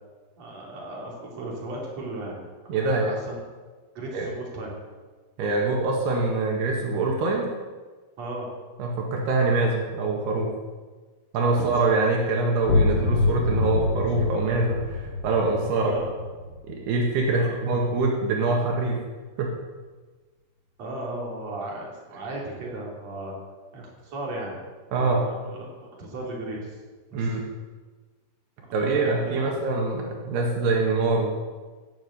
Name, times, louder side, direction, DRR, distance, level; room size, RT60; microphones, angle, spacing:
voice 1, 0.4-2.4 2.7-3.4 3.9-4.7 8.2-8.5 11.5-11.6 13.5-13.6 15.0-15.1 15.6-16.1 17.3-17.6 20.8-23.3 23.7-24.6 24.9-25.7 26.0-26.7 27.1-27.4 28.8-29.6, right 1 dB, 45° right, -3 dB, 4.3 m, -36 dB
voice 2, 2.7-3.1 4.1-4.3 5.4-7.5 8.8-10.5 11.3-15.9 16.7-19.0 19.4-19.5 24.9-25.3 27.1-27.5 28.7-31.4, right 3 dB, 80° right, 0 dB, 3.8 m, -24 dB
sound 1, 12.6-18.2, left 3 dB, 40° left, 1.8 m, -27 dB
17.5 x 7.3 x 8.2 m, 1.4 s
omnidirectional pair, 4.6 m